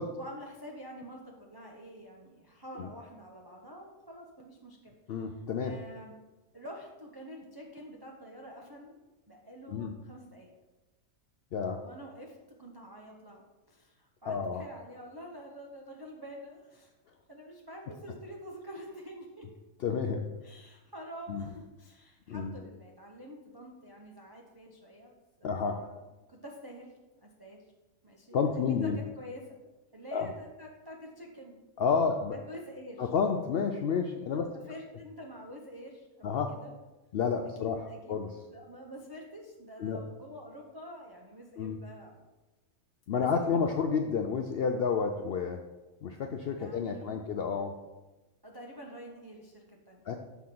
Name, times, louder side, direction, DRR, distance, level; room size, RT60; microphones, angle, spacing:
voice 1, 0.1-5.2 5.6-6.1 6.5-9.0 9.3-10.5 11.8-16.9 17.3-19.5 20.4-25.9 26.3-27.6 28.0-29.6 29.9-31.6 32.3-33.1 34.3-36.7 37.6-38.2 38.5-42.2 43.2-43.6 46.6-47.2 48.4-50.1, equal, 25° right, -1 dB, 0.5 m, -47 dB
voice 2, 5.1-5.7 9.7-9.9 11.5-11.8 14.3-14.6 19.8-20.3 21.3-21.5 22.3-22.6 25.4-25.8 28.3-29.0 30.1-30.3 31.8-32.4 33.0-34.5 36.2-36.5 37.1-38.4 39.8-40.0 41.6-41.8 43.1-45.7 46.0-47.8 50.1-50.2, left 6 dB, 70° left, 5 dB, 0.5 m, -30 dB
7.1 x 3.7 x 5.8 m, 1.1 s
omnidirectional pair, 1.5 m